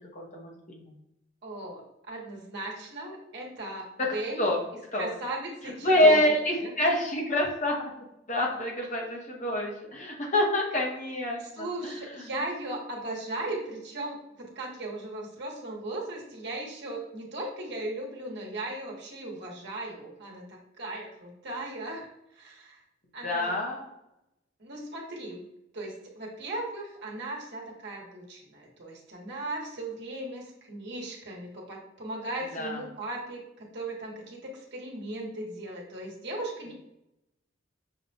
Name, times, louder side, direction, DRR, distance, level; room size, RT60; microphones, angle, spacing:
voice 1, 0.1-0.9 4.0-4.1 4.4-4.6 4.9-5.1 5.8-7.8 8.3-11.9 12.2-12.3 23.2-23.9 32.5-32.8, left 1 dB, 40° left, -1 dB, 0.9 m, -26 dB
voice 2, 1.4-4.5 5.0-6.7 11.4-22.8 23.1-23.5 24.6-25.4 25.7-36.7, right 2 dB, 60° right, -2 dB, 1.1 m, -37 dB
6.0 x 2.2 x 2.6 m, 0.86 s
head